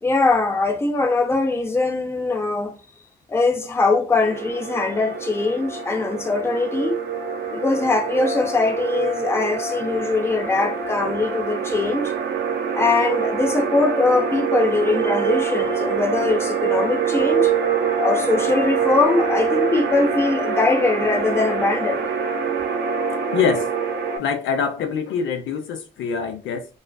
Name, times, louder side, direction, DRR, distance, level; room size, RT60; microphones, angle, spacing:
voice 1, 0.0-2.8 3.3-6.9 7.5-12.1 12.7-17.5 18.0-22.0, left 3 dB, 10° left, 0.5 m, -21 dB
sound 1, 4.2-24.2, right 6 dB, 55° right, 0.5 m, -25 dB
voice 2, 23.3-23.6 24.2-26.7, left 6 dB, 80° left, 0.5 m, -24 dB
2.3 x 2.3 x 2.2 m
cardioid pair, 90°, 20 cm